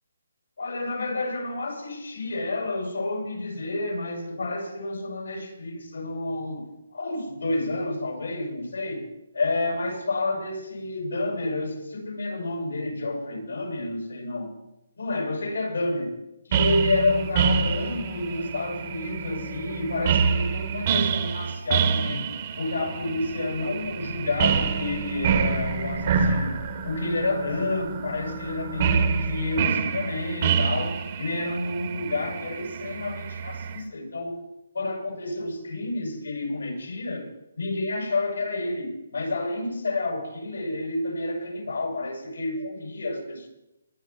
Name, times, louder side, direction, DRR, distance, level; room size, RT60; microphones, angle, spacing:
voice 1, 0.6-9.1 9.3-14.5 15.0-16.1 16.5-22.3 22.6-26.5 26.8-34.4 34.7-37.3 37.5-43.5, left 2 dB, 85° left, 6.8 m, -29 dB
sound 1, 16.5-33.8, right 6 dB, 40° right, 1.6 m, -27 dB
22.0 x 11.0 x 4.5 m
hypercardioid pair, 155°, 0 cm